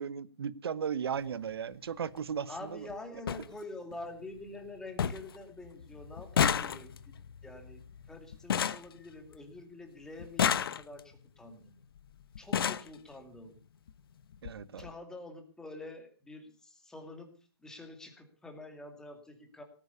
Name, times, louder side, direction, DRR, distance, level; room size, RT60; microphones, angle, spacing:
voice 1, 0.0-2.9 14.4-14.9, right 7 dB, 60° right, 1.1 m, -36 dB
sound 1, 1.1-1.3 2.6-2.7 2.9-3.0 3.3-3.5 3.9-4.4 4.7-4.8 5.0-5.4 5.6-9.6 10.2-11.2 12.0-12.1 12.4-12.9 13.9-14.0 14.3-14.5 14.8-14.9, left 8 dB, 55° left, 1.1 m, -32 dB
voice 2, 2.4-6.9 7.4-11.8 12.4-13.6 14.8-17.3 17.6-19.6, left 2 dB, 5° left, 2.4 m, -47 dB
18.5 x 9.2 x 6.9 m
hypercardioid pair, 155°, 14 cm